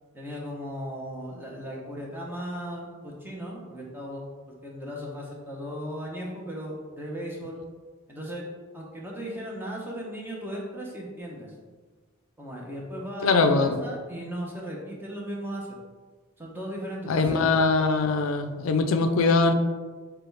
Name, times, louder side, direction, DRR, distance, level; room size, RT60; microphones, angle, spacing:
voice 1, 0.1-4.2 4.6-7.6 8.1-8.4 8.7-11.5 12.4-15.7 16.4-17.4, equal, 10° right, -2 dB, 0.7 m, -36 dB
voice 2, 13.2-13.8 17.1-19.5, left 3 dB, 85° left, 7 dB, 0.4 m, -22 dB
6.6 x 2.3 x 3.3 m, 1.4 s
head